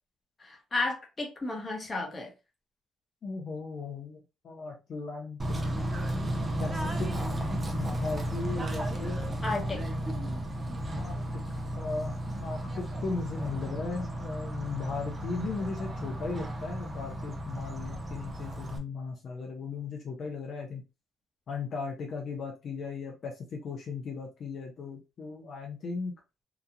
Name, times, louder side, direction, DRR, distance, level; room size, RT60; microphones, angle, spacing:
voice 1, 0.4-2.3 9.4-9.8, left 3 dB, 30° left, 1.0 m, -33 dB
voice 2, 3.2-4.2 4.4-5.4 6.6-7.1 7.7-9.2 11.0-11.2 11.7-12.1 12.4-20.8 21.5-26.1, left 4 dB, 60° left, 0.6 m, -37 dB
Bird / Train, 5.4-18.8, right 1 dB, 30° right, 0.6 m, -34 dB
2.9 x 2.4 x 2.5 m
cardioid pair, 90°, 0 cm